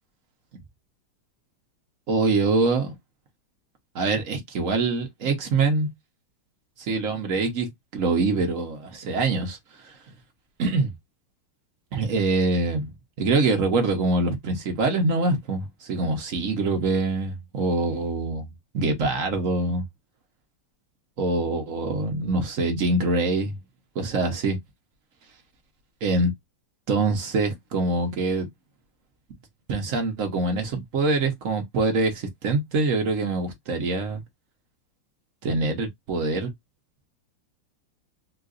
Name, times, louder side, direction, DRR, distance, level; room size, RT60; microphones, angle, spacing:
voice 1, 2.1-3.0 3.9-5.9 6.8-10.0 10.6-10.9 11.9-12.9 13.2-18.4 18.7-19.8 21.2-23.6 23.9-24.6 26.0-26.3 26.9-28.5 29.7-34.2 35.4-36.5, right 3 dB, 60° right, 0.8 m, -24 dB
3.8 x 2.4 x 2.4 m
omnidirectional pair, 2.4 m